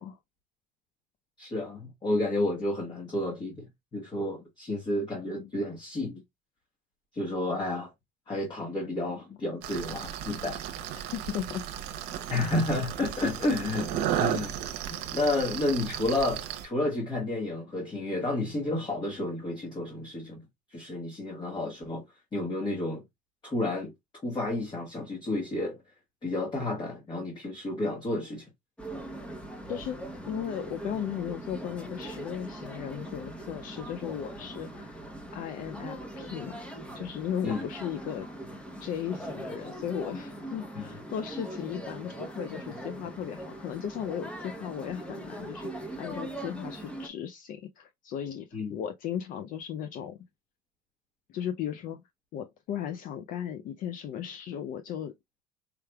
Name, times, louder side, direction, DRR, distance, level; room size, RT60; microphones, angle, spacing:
voice 1, 1.4-3.7 3.9-6.2 7.1-7.9 8.3-10.6 12.3-14.6 15.1-20.4 20.7-22.0 22.3-23.0 23.4-23.9 24.2-25.8 26.2-28.5 37.4-37.6 40.7-40.9 48.5-48.8, left 2 dB, 25° left, 1.3 m, -31 dB
sound 1, 9.6-16.7, right 10 dB, 75° right, 0.8 m, -34 dB
voice 2, 11.1-11.6 29.7-30.0 30.3-34.9 35.3-36.6 36.9-38.3 38.8-50.2 51.3-52.0 52.3-55.1, left 9 dB, 55° left, 0.5 m, -36 dB
Underground funikuler ride amb inside Istanbul Turkey, 28.8-47.1, right 1 dB, 5° left, 0.8 m, -41 dB
4.5 x 3.3 x 2.2 m
cardioid pair, 115°, 17 cm